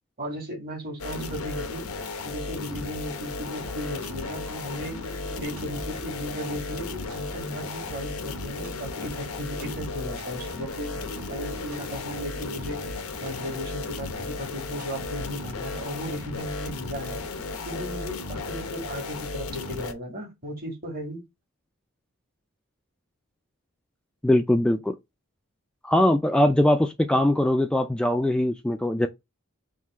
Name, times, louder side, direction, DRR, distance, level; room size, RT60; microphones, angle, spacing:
voice 1, 0.2-1.9 2.2-5.0 5.4-10.9 11.3-12.8 13.2-17.2 17.7-21.2, equal, 45° right, 1.9 m, -36 dB
sound 1, 1.0-19.9, left 3 dB, 90° left, 0.8 m, -35 dB
sound 2, 3.4-15.7, right 1 dB, 70° right, 1.5 m, -45 dB
voice 2, 24.2-24.9 25.8-29.1, left 1 dB, 5° left, 0.3 m, -21 dB
3.7 x 2.7 x 4.2 m
head